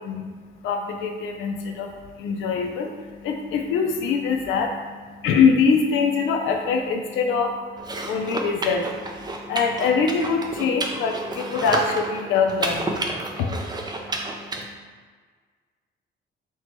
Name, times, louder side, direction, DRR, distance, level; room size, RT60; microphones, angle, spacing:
voice 1, 0.0-14.7, left 5 dB, 80° left, 3 dB, 0.5 m, -24 dB
sound 1, 7.8-14.6, right 2 dB, 20° right, 0.4 m, -30 dB
4.4 x 2.2 x 4.4 m, 1.5 s
cardioid pair, 130°, 20 cm